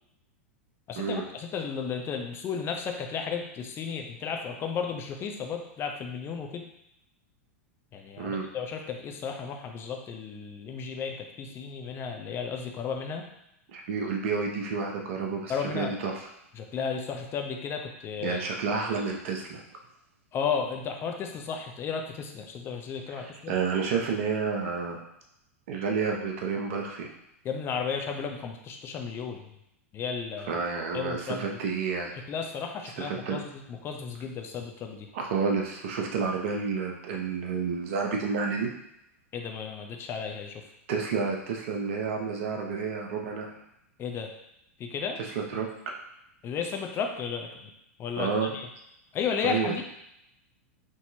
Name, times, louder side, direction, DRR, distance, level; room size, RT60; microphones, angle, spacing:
voice 1, 0.9-6.7 7.9-13.2 15.5-15.9 16.6-18.4 20.3-23.5 27.4-29.4 29.9-30.5 30.9-31.5 32.3-35.1 39.3-40.6 44.0-44.3 44.8-45.2 46.4-47.7 48.0-48.7 49.1-49.8, left 6 dB, 30° left, 3 dB, 0.7 m, -33 dB
voice 2, 13.7-16.3 18.2-19.6 23.1-25.0 25.7-27.1 30.5-32.1 33.0-33.4 35.1-38.7 40.9-43.5 45.2-45.7 48.2-48.5 49.4-49.7, right 5 dB, 65° right, 1 dB, 0.8 m, -30 dB
6.2 x 2.8 x 2.8 m, 0.80 s
hypercardioid pair, 105°, 8 cm